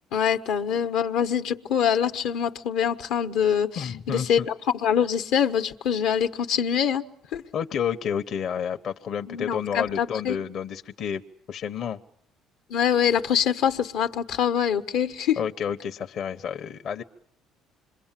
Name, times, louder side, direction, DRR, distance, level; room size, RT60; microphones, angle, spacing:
voice 1, 0.1-7.0 7.3-7.4 9.3-10.4 12.7-15.4, left 8 dB, 80° left, 8 dB, 1.2 m, -24 dB
voice 2, 3.8-4.5 7.5-11.2 11.5-12.0 15.4-17.0, left 8 dB, 60° left, 7 dB, 1.0 m, -30 dB
26.5 x 23.0 x 7.5 m, 0.71 s
supercardioid pair, 85°, 0 cm